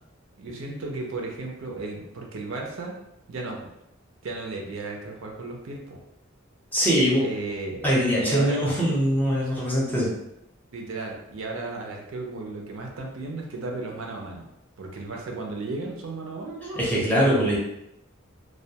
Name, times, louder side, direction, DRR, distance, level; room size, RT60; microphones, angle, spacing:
voice 1, 0.4-2.9 3.3-3.7 4.2-6.0 7.2-7.8 8.2-8.6 9.4-9.5 10.7-14.5 14.8-17.0, right 3 dB, 70° right, 0 dB, 0.5 m, -34 dB
voice 2, 6.7-7.2 7.8-10.1 16.8-17.6, equal, 10° left, -6 dB, 0.6 m, -22 dB
2.3 x 2.2 x 2.7 m, 0.84 s
head